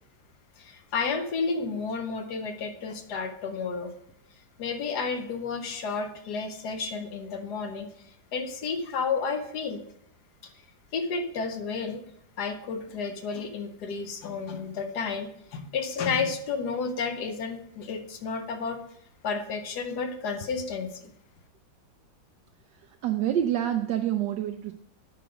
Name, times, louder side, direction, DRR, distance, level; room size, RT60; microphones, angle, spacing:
voice 1, 0.6-3.9 4.6-7.9 8.3-9.8 10.9-12.0 12.4-18.8 19.2-21.1, left 5 dB, 65° left, 7 dB, 1.2 m, -31 dB
voice 2, 22.7-24.7, right 11 dB, 75° right, 6 dB, 1.1 m, -27 dB
8.9 x 5.0 x 4.9 m, 0.73 s
omnidirectional pair, 2.1 m